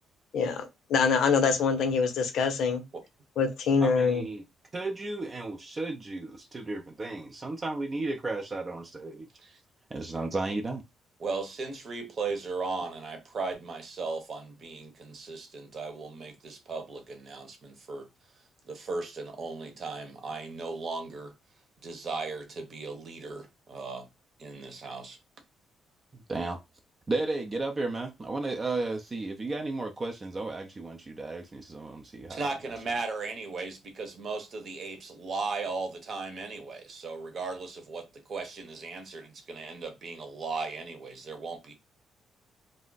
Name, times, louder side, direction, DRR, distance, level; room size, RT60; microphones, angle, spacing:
voice 1, 0.3-2.8 3.4-4.2, left 5 dB, 75° left, 0.6 m, -25 dB
voice 2, 3.8-4.4 4.7-9.3 9.9-10.8 26.1-26.6 27.1-32.4, right 2 dB, 30° right, 0.5 m, -34 dB
voice 3, 11.2-18.1 18.7-21.3 21.8-24.1 24.4-25.2 32.3-41.7, right 4 dB, 50° right, 0.9 m, -37 dB
2.4 x 2.0 x 3.8 m
cardioid pair, 90°, 0 cm